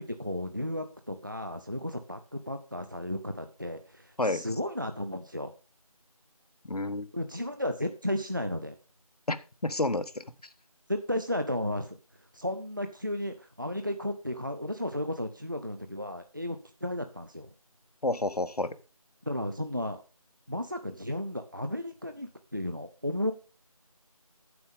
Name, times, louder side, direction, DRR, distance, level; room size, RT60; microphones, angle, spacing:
voice 1, 0.0-5.5 7.1-8.7 10.9-12.0 12.3-17.5 19.3-20.0 20.5-23.3, left 1 dB, 35° right, 7 dB, 0.6 m, -34 dB
voice 2, 6.6-7.1 9.3-9.4 9.6-10.2 18.0-18.7, left 2 dB, 85° left, 12 dB, 1.2 m, -29 dB
9.4 x 7.3 x 5.2 m, 0.34 s
figure-of-eight pair, 180°, 19 cm